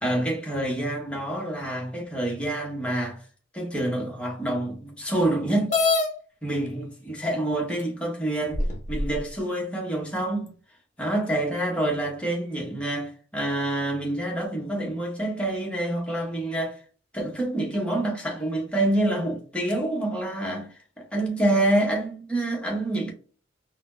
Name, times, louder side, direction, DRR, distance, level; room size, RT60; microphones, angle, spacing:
voice 1, 0.0-3.2 3.5-5.7 6.4-8.6 8.9-10.5 11.0-16.8 17.1-23.1, right 1 dB, 5° left, 0.9 m, -27 dB
sound 1, 5.7-6.1 7.1-7.2 7.8-7.9 8.5-9.2, left 3 dB, 40° left, 0.7 m, -23 dB
4.0 x 2.0 x 2.5 m
head